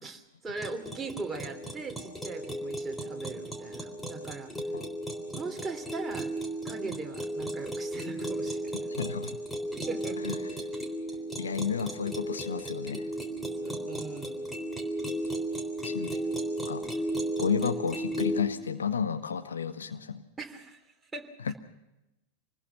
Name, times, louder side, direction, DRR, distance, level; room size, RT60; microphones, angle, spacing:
voice 1, 0.0-4.5 5.3-6.3 6.6-8.9 9.8-10.3 13.6-14.6 20.4-20.8 21.1-21.5, right 4 dB, 15° right, 2 dB, 3.0 m, -40 dB
sound 1, 0.6-18.4, right 1 dB, 5° left, 3.7 m, -35 dB
voice 2, 9.0-9.3 10.2-10.5 11.4-13.1 15.8-16.2 16.7-16.8 17.4-20.2 21.4-21.5, left 6 dB, 70° left, 9 dB, 1.3 m, -32 dB
26.5 x 20.0 x 5.7 m, 0.93 s
figure-of-eight pair, 90°, 0 cm